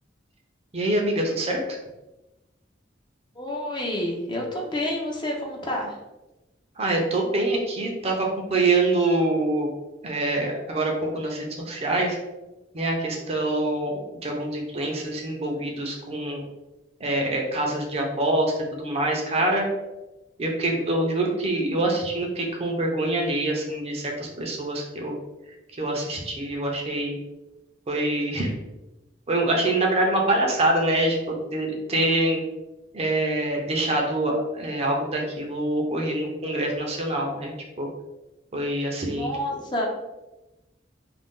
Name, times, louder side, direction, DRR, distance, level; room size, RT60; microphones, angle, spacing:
voice 1, 0.7-1.6 6.8-9.7 10.0-12.2 12.7-16.4 17.0-19.7 20.4-25.1 25.8-27.2 27.9-28.5 29.3-32.4 32.9-37.9 38.5-39.3, right 2 dB, 35° right, 1 dB, 0.5 m, -25 dB
voice 2, 3.4-6.0 39.1-39.9, left 1 dB, 25° left, -1 dB, 0.5 m, -29 dB
2.5 x 2.2 x 3.5 m, 1.0 s
head